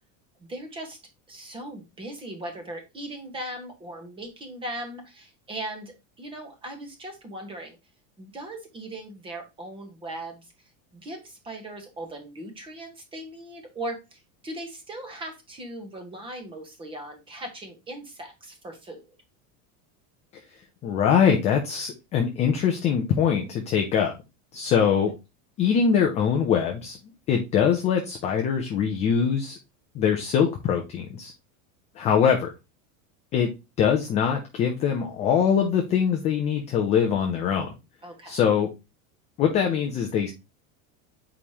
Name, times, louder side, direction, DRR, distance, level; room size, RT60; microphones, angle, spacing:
voice 1, 0.4-1.0 1.3-7.8 8.2-10.5 10.9-19.0 38.0-38.4, right 1 dB, 15° right, 5 dB, 1.1 m, -38 dB
voice 2, 20.8-24.1 24.5-25.1 25.6-27.0 27.3-29.6 29.9-31.3 32.0-32.5 33.3-33.5 33.8-37.7 38.3-38.7 39.4-40.3, left 7 dB, 15° left, 2 dB, 0.4 m, -23 dB
7.1 x 4.8 x 2.8 m, 0.25 s
cardioid pair, 180°, 40 cm